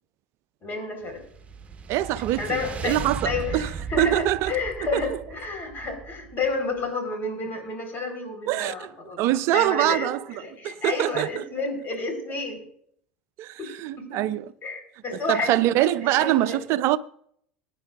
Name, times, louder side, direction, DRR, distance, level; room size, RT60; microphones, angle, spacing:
voice 1, 0.6-1.2 2.4-9.2 9.5-12.6 13.6-14.3 14.6-16.6, left 3 dB, 35° left, 4.3 m, -31 dB
sound 1, 1.1-6.5, right 5 dB, 20° right, 1.4 m, -36 dB
voice 2, 1.9-2.4 2.8-3.7 4.0-4.5 4.9-5.0 8.5-8.9 9.2-10.2 10.6-11.5 13.4-14.5 15.1-17.0, right 15 dB, 50° right, 0.6 m, -24 dB
22.0 x 9.8 x 2.5 m
figure-of-eight pair, 75°, 6 cm